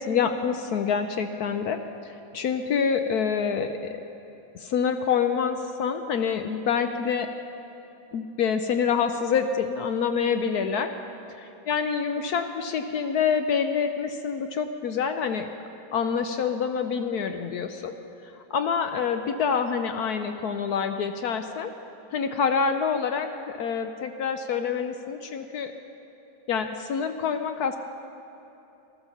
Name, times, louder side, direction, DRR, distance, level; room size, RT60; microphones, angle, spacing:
voice 1, 0.0-4.0 4.5-7.3 8.1-10.9 11.4-15.5 15.9-18.0 18.5-21.7 22.1-25.7 26.5-27.8, left 6 dB, 65° left, 7 dB, 1.0 m, -27 dB
14.5 x 13.0 x 7.0 m, 3.0 s
omnidirectional pair, 2.1 m